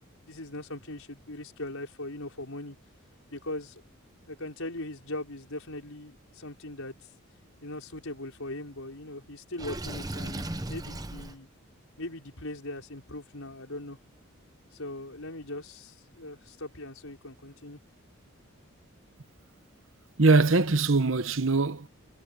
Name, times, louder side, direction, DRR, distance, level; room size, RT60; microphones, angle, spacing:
voice 1, 0.2-2.8 3.3-3.8 4.3-6.9 7.6-11.5 12.0-14.0 14.7-17.8, left 1 dB, 75° left, 5.4 m, -40 dB
Water / Sink (filling or washing), 9.6-11.4, right 1 dB, 15° right, 0.9 m, -36 dB
voice 2, 20.2-21.9, right 3 dB, 60° right, 1.1 m, -22 dB
head